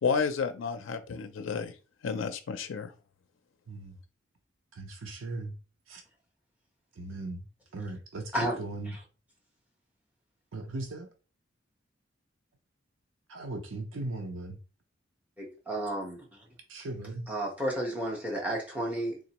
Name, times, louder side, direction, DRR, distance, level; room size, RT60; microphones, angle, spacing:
voice 1, 0.0-1.7 2.0-2.9, left 5 dB, 75° left, 0.4 m, -31 dB
voice 2, 3.7-4.0 4.7-5.6 5.9-6.0 6.9-7.5 7.7-9.0 10.5-11.1 13.3-14.6 16.7-17.3, right 2 dB, 90° right, 0.6 m, -38 dB
voice 3, 15.4-16.3 17.3-19.2, right 1 dB, 10° right, 1.1 m, -32 dB
3.8 x 2.9 x 2.9 m
head